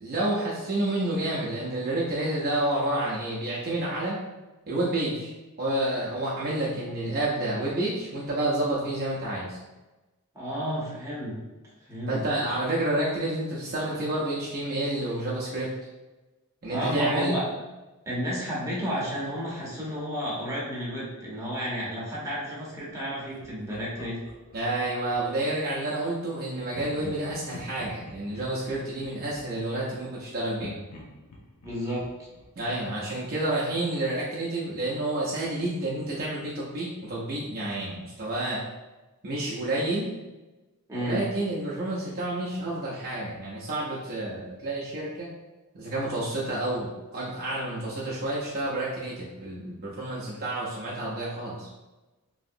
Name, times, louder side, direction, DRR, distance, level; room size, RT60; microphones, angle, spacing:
voice 1, 0.0-4.2 4.7-5.3 5.6-9.6 12.1-15.7 16.6-17.3 24.5-30.7 32.6-38.6 39.2-40.1 41.0-45.3 45.7-51.7, right 1 dB, 45° right, -6 dB, 0.6 m, -29 dB
voice 2, 10.3-11.4 11.9-12.5 16.7-17.4 18.1-24.2 31.6-32.3 40.9-41.2, equal, 15° right, -7 dB, 0.8 m, -32 dB
Laughter, 23.4-25.5 26.7-30.2 30.6-33.3, left 2 dB, 70° left, 0.6 m, -47 dB
3.0 x 2.7 x 2.5 m, 1.1 s
head